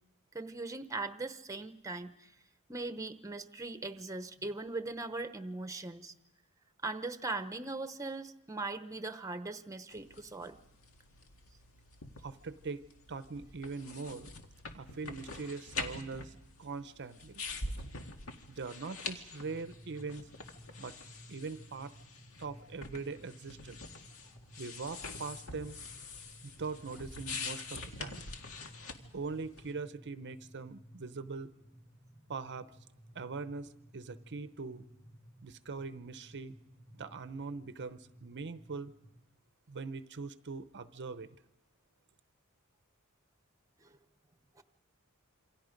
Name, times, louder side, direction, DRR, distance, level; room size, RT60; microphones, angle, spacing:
voice 1, 0.3-2.3 2.7-6.1 6.8-10.6 43.8-44.0 44.6-44.7, right 3 dB, 15° right, 0.9 m, -40 dB
sound 1, 9.9-29.7, left 3 dB, 70° left, 2.0 m, -45 dB
voice 2, 12.2-12.8 13.1-14.3 14.7-16.3 16.6-17.4 18.5-20.3 20.8-20.9 21.3-21.9 22.4-23.8 24.6-25.8 26.4-28.2 29.1-31.5 32.3-32.7 33.1-34.9 35.4-36.5 36.9-38.9 39.7-41.3, right 4 dB, 55° right, 0.7 m, -42 dB
sound 2, 19.4-39.2, equal, 35° left, 4.9 m, -57 dB
27.5 x 25.5 x 5.2 m
head